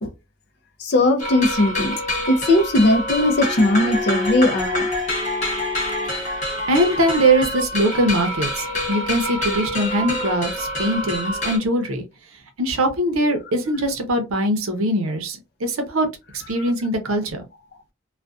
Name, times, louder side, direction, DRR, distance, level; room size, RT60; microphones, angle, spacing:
voice 1, 0.8-2.0 2.3-4.9, left 2 dB, 55° left, 0.5 m, -18 dB
sound 1, 1.2-11.6, left 1 dB, 35° left, 1.0 m, -26 dB
voice 2, 6.1-12.0 12.6-16.1 16.5-17.4, right 1 dB, 85° right, 0.7 m, -22 dB
2.4 x 2.2 x 2.3 m
head